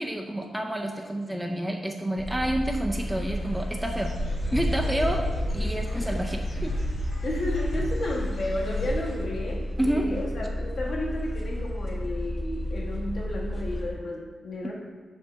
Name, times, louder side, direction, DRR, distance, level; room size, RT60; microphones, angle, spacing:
voice 1, 0.0-4.1 4.5-5.2 5.5-6.8 9.8-10.1, right 1 dB, 5° right, 1 dB, 0.4 m, -29 dB
sound 1, 2.2-13.9, equal, 25° left, 1.0 m, -32 dB
Dog / Bird, 2.9-9.2, equal, 70° left, 2.0 m, -32 dB
voice 2, 7.2-14.7, left 1 dB, 55° left, -2 dB, 1.4 m, -32 dB
6.3 x 5.5 x 4.5 m, 1.4 s
wide cardioid pair, 165°, 0 cm